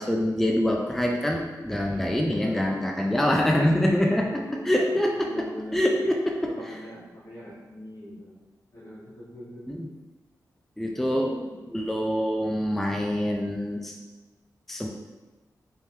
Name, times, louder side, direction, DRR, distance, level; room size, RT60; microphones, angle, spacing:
voice 1, 0.0-4.3 4.6-5.5 5.7-6.5 9.7-9.9 10.8-11.3 11.7-13.9 14.7-14.9, left 1 dB, 5° left, 0 dB, 0.3 m, -25 dB
voice 2, 1.7-2.2 4.0-6.0 6.4-8.5 8.7-9.8 10.9-11.5, equal, 70° left, -9 dB, 1.5 m, -43 dB
3.6 x 3.0 x 2.7 m, 1.2 s
wide cardioid pair, 95°, 7 cm